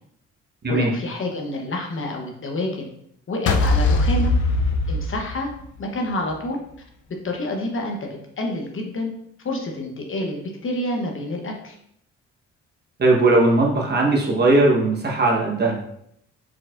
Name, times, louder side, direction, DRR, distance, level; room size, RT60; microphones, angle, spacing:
voice 1, 0.7-2.9 3.3-4.3 4.9-5.5 5.8-6.6 7.2-9.1 9.4-11.7, left 1 dB, 45° left, 1 dB, 0.9 m, -28 dB
sound 1, 3.5-5.8, left 2 dB, 75° left, 0.5 m, -20 dB
voice 2, 13.0-15.9, right 2 dB, 35° right, -1 dB, 1.1 m, -18 dB
4.7 x 4.0 x 2.5 m, 0.71 s
cardioid pair, 90°, 30 cm